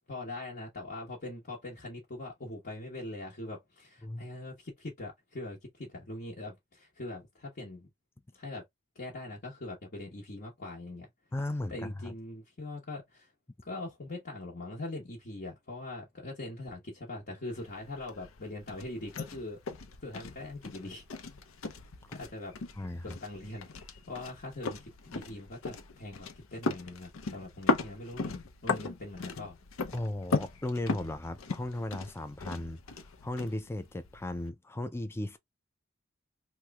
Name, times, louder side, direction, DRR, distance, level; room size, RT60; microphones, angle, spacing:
voice 1, 0.1-7.9 8.3-8.6 8.9-11.1 11.7-13.3 13.6-19.6 20.0-21.0 22.1-22.5 23.0-29.6, left 2 dB, 45° left, 0.9 m, -42 dB
voice 2, 11.3-12.1 22.8-23.2 29.9-35.4, left 1 dB, 10° left, 0.3 m, -36 dB
sound 1, 17.5-34.5, left 3 dB, 75° left, 0.6 m, -38 dB
3.0 x 2.1 x 3.4 m
head